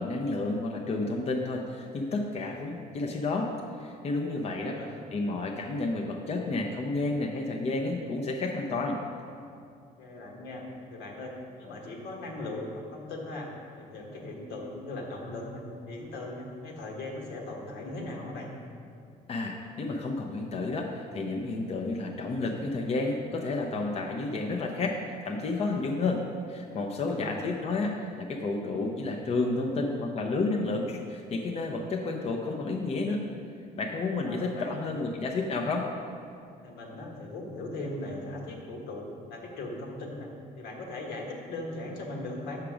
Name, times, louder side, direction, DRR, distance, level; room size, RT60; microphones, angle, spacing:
voice 1, 0.0-3.5 3.8-4.8 5.1-9.0 19.3-26.2 26.5-33.2 33.8-35.9, left 3 dB, 40° left, 1 dB, 0.7 m, -31 dB
voice 2, 4.4-4.9 10.0-10.6 10.9-13.5 13.8-15.6 15.9-18.5 26.6-26.8 27.0-27.3 34.2-34.8 36.6-40.3 40.6-42.6, left 2 dB, 80° left, -1 dB, 1.4 m, -39 dB
6.6 x 5.9 x 4.9 m, 2.4 s
cardioid pair, 110°, 17 cm